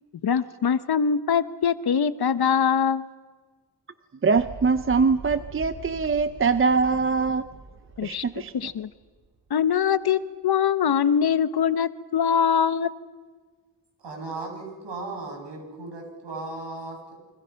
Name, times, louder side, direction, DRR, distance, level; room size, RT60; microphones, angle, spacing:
voice 1, 0.2-3.1 8.0-8.2 8.5-8.9 9.5-12.9, left 7 dB, 60° left, 14 dB, 1.0 m, -23 dB
voice 2, 4.2-7.4 8.0-8.7, right 5 dB, 30° right, 12 dB, 0.6 m, -23 dB
sound 1, 4.4-9.6, right 3 dB, 55° right, 3.7 m, -43 dB
voice 3, 14.0-17.1, right 2 dB, 75° right, 2 dB, 7.6 m, -36 dB
29.5 x 24.5 x 5.8 m, 1.4 s
wide cardioid pair, 130°, 43 cm